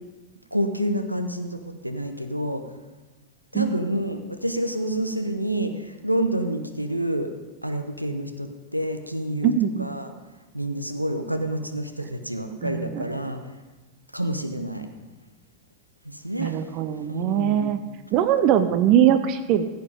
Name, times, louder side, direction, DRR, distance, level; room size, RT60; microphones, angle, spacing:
voice 1, 0.5-2.6 3.5-7.3 7.6-9.5 9.8-10.1 10.5-13.4 14.1-14.9 16.0-16.6 17.1-17.8, right 1 dB, 90° right, 7 dB, 0.9 m, -28 dB
voice 2, 9.4-9.9 12.6-13.0 16.4-17.8 18.1-19.6, right 10 dB, 40° right, 11 dB, 0.6 m, -21 dB
15.5 x 8.0 x 5.2 m, 1.2 s
figure-of-eight pair, 90°, 0 cm